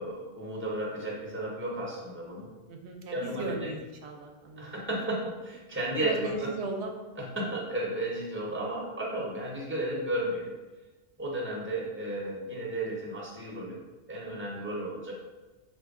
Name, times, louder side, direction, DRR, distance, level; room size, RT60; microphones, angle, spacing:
voice 1, 0.0-2.5 3.1-3.7 4.6-6.5 7.2-10.5 11.2-13.8 14.1-15.1, right 1 dB, 15° right, -3 dB, 0.8 m, -34 dB
voice 2, 2.7-5.0 6.0-7.0, right 2 dB, 80° right, 2 dB, 0.9 m, -36 dB
4.5 x 2.5 x 3.6 m, 1.2 s
omnidirectional pair, 1.1 m